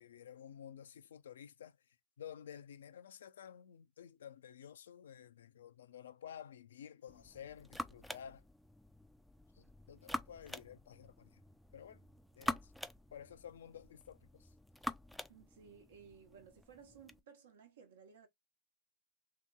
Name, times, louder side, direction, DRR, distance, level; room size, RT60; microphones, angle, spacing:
voice 1, 0.0-8.4 9.5-11.4 11.7-12.0 12.4-12.7 13.1-14.5, left 9 dB, 75° left, 0.3 m, -53 dB
sound 1, 7.1-17.2, left 1 dB, ahead, 0.3 m, -46 dB
voice 2, 15.3-18.3, right 6 dB, 75° right, 0.9 m, -58 dB
2.8 x 2.7 x 2.3 m
hypercardioid pair, 95°, 0 cm